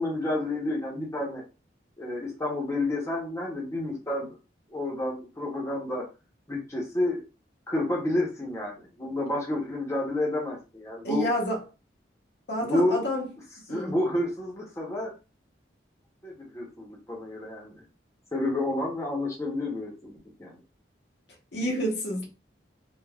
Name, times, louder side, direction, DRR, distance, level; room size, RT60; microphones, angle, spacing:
voice 1, 0.0-1.4 2.0-4.4 4.7-6.0 6.5-7.2 7.7-11.3 12.6-13.0 13.7-15.1 16.2-17.7 18.3-20.6, left 1 dB, 15° left, 0.7 m, -30 dB
voice 2, 11.0-11.6 12.5-13.2 13.7-14.0 21.5-22.3, equal, 65° left, 0.8 m, -29 dB
3.3 x 2.2 x 2.2 m
head